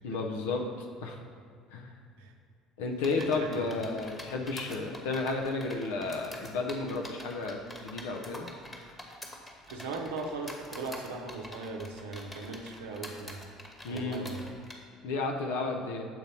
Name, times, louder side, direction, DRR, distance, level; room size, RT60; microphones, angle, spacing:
voice 1, 0.0-1.2 1.7-1.9 2.8-8.5 13.8-14.2 15.0-16.1, left 3 dB, 70° left, 2 dB, 0.6 m, -32 dB
sound 1, 3.0-14.7, left 1 dB, 15° left, 1.2 m, -46 dB
voice 2, 3.2-3.6 9.7-13.4 13.9-14.4, right 3 dB, 70° right, 2 dB, 0.7 m, -38 dB
7.5 x 4.0 x 5.4 m, 2.2 s
figure-of-eight pair, 60°, 0 cm